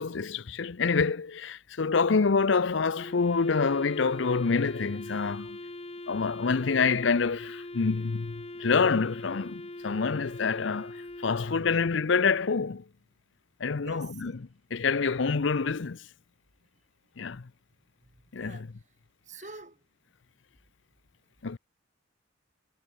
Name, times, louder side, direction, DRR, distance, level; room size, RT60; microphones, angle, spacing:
voice 1, 0.0-5.6 6.1-10.9 11.2-12.8 13.6-16.0 17.2-17.4 18.3-18.7 21.4-21.6, left 5 dB, 65° left, 0.6 m, -27 dB
Wind instrument woodwind instrument, 2.9-12.2, left 2 dB, 30° left, 1.1 m, -42 dB
voice 2, 13.8-14.2 18.4-18.7 19.3-19.8, right 3 dB, 35° right, 3.9 m, -46 dB
head